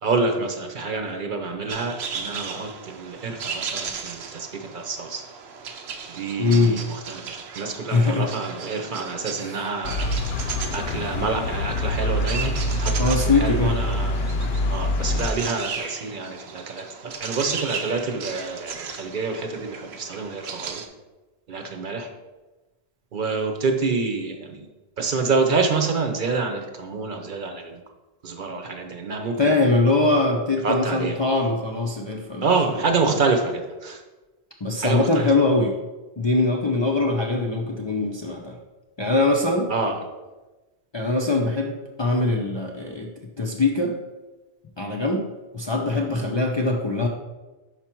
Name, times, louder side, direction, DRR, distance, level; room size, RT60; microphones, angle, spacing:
voice 1, 0.0-5.2 6.1-10.1 10.4-14.2 14.7-20.8 21.5-22.1 23.1-24.7 25.0-27.8 28.2-29.5 30.6-31.2 32.4-34.0 34.8-35.3 39.7-40.0, right 4 dB, 55° right, 5 dB, 0.8 m, -27 dB
sound 1, 1.7-20.9, right 6 dB, 85° right, 0.9 m, -36 dB
voice 2, 6.4-6.8 7.9-8.3 9.4-9.6 13.0-13.7 29.4-32.5 33.1-33.2 34.6-35.8 36.2-38.6 39.0-39.7 40.9-41.7 42.0-43.1 43.4-44.0 44.8-45.2 45.5-47.1, left 3 dB, 40° left, 0 dB, 0.4 m, -22 dB
sound 2, 9.8-15.3, left 1 dB, 80° left, 0.8 m, -25 dB
5.8 x 4.7 x 4.4 m, 1.2 s
omnidirectional pair, 1.0 m